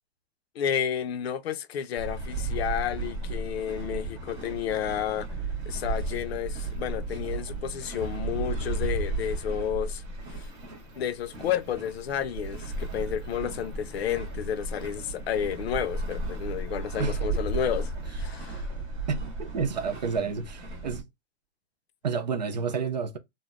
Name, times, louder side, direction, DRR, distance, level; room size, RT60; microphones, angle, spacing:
voice 1, 0.6-5.3 5.7-10.0 10.3-10.5 11.0-18.6, left 9 dB, 65° left, 0.6 m, -31 dB
sound 1, 2.0-21.0, right 2 dB, 10° right, 0.8 m, -34 dB
voice 2, 19.1-21.0 22.0-23.2, right 5 dB, 40° right, 0.4 m, -30 dB
3.3 x 2.1 x 2.5 m
hypercardioid pair, 175°, 34 cm